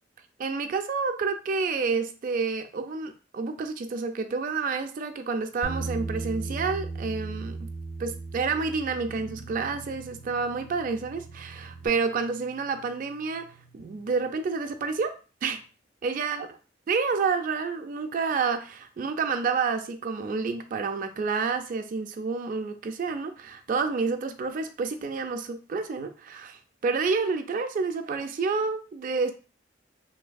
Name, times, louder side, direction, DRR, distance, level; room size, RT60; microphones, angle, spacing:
voice 1, 0.4-7.7 8.0-13.5 13.7-15.1 15.4-15.6 16.0-16.5 16.9-29.3, right 4 dB, 45° right, 8 dB, 0.3 m, -29 dB
Bass guitar, 5.6-11.9, right 3 dB, 90° left, 1.2 m, -37 dB
Guitar, 9.1-14.3, right 4 dB, 40° left, 0.5 m, -51 dB
3.3 x 2.6 x 2.2 m, 0.35 s
head